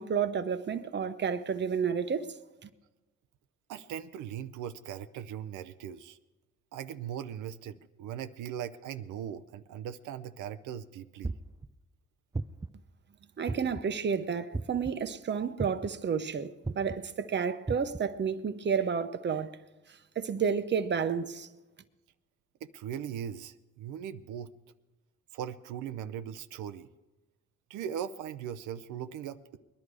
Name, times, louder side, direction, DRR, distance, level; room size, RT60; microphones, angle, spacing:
voice 1, 0.0-2.3 2.6-2.7 13.4-19.5 20.2-21.5, right 6 dB, 35° right, 0.9 m, -31 dB
voice 2, 3.7-6.2 6.7-11.3 22.6-24.5 25.3-26.9 27.7-29.6, right 9 dB, 90° right, 0.7 m, -39 dB
sound 1, 11.2-11.7 12.3-12.8 13.5-13.9 14.5-14.9 15.6-16.0 16.6-17.0 17.7-18.0, right 3 dB, 10° right, 0.4 m, -35 dB
21.0 x 11.0 x 4.8 m
cardioid pair, 90°, 30 cm